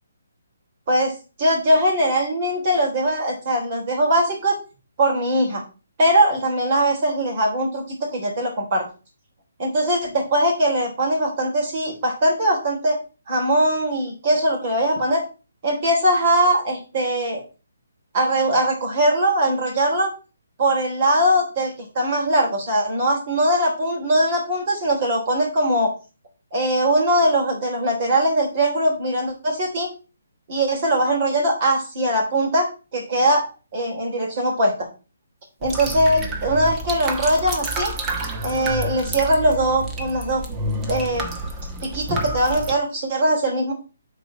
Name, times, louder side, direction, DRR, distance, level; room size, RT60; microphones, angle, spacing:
voice 1, 1.4-4.5 5.0-5.6 6.0-8.9 9.6-13.0 13.3-15.2 15.6-17.4 18.1-20.1 20.6-25.9 26.5-29.9 30.5-34.9 35.6-37.9 38.4-40.4 40.9-41.3 41.8-43.7, right 1 dB, 40° right, 0 dB, 3.4 m, -21 dB
sound 1, 35.6-42.7, right 1 dB, 15° right, 1.1 m, -29 dB
6.3 x 4.2 x 6.4 m, 0.32 s
hypercardioid pair, 155°, 0 cm